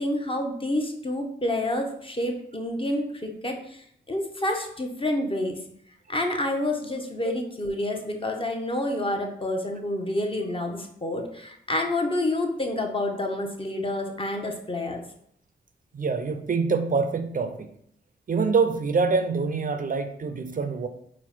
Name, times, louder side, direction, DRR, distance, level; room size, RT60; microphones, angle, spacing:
voice 1, 0.0-5.6 6.1-15.0, left 1 dB, 25° left, 3 dB, 0.8 m, -28 dB
voice 2, 15.9-17.7 18.3-20.9, right 4 dB, 45° right, 7 dB, 0.5 m, -25 dB
4.3 x 2.1 x 4.2 m, 0.69 s
supercardioid pair, 45°, 20 cm